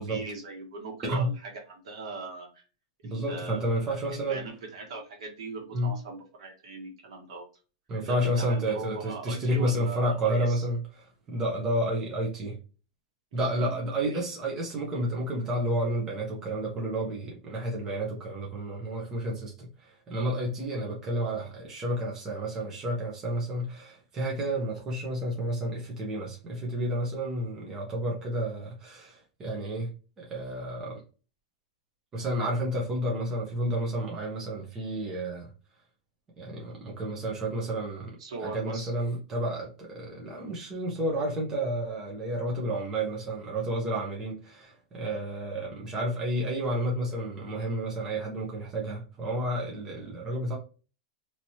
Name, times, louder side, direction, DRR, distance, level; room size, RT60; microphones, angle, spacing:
voice 1, 0.0-2.6 3.0-7.5 8.0-10.6 13.6-14.2 20.8-20.9 38.2-38.9, right 3 dB, 65° right, 1.6 m, -40 dB
voice 2, 3.0-4.4 5.7-5.9 7.9-12.6 13.3-29.9 30.2-31.0 32.1-35.5 36.4-38.1 38.4-50.6, right 1 dB, 15° right, 0.8 m, -31 dB
2.9 x 2.9 x 2.7 m
supercardioid pair, 175°, 3 cm